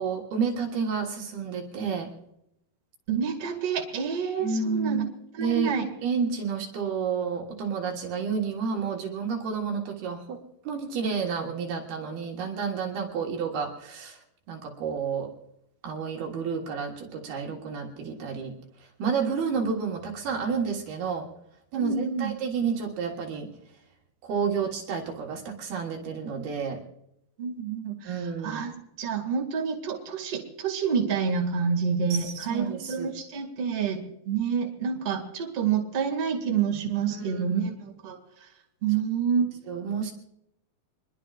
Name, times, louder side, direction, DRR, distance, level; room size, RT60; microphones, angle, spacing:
voice 1, 0.0-2.1 4.4-5.1 5.4-5.7 6.0-10.4 10.6-14.2 14.5-15.3 15.8-18.5 18.8-21.3 21.7-23.5 24.2-26.8 28.1-28.6 32.1-33.1 37.1-37.7 39.7-40.1, right 6 dB, 70° right, 0 dB, 3.4 m, -30 dB
voice 2, 3.1-5.0 5.4-5.9 21.8-22.3 27.4-38.2 38.8-39.5, right 6 dB, 40° right, 1 dB, 2.6 m, -28 dB
26.5 x 21.5 x 2.5 m, 0.81 s
omnidirectional pair, 4.8 m